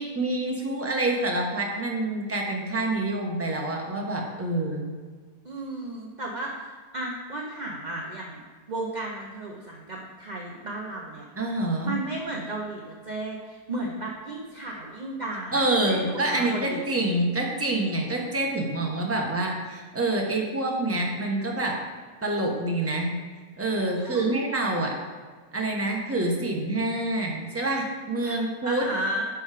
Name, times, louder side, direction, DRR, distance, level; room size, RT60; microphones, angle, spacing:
voice 1, 0.0-4.9 11.4-12.0 15.5-21.8 22.2-23.1 23.6-24.9 25.5-28.8, right 2 dB, 10° right, 0 dB, 0.9 m, -27 dB
voice 2, 5.4-8.4 8.7-11.3 11.8-16.8 24.0-24.4 28.2-29.2, right 2 dB, 40° right, -1 dB, 0.6 m, -34 dB
10.5 x 4.8 x 5.0 m, 1.5 s
omnidirectional pair, 1.9 m